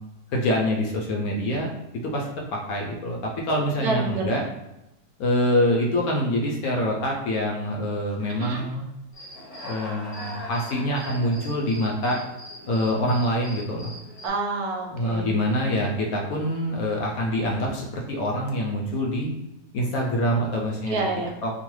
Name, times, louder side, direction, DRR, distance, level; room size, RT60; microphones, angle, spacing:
voice 1, 0.3-1.7 2.0-4.4 5.2-8.9 9.6-12.2 12.7-13.9 14.9-19.3 19.7-21.0 21.4-21.5, equal, 70° left, -1 dB, 1.0 m, -25 dB
voice 2, 3.8-4.3 8.3-8.6 14.2-15.6 20.9-21.3, right 3 dB, 70° right, 0 dB, 1.1 m, -28 dB
Human voice / Cricket, 9.1-14.3, equal, 40° left, 0.6 m, -40 dB
3.0 x 2.1 x 3.0 m, 0.93 s
omnidirectional pair, 1.8 m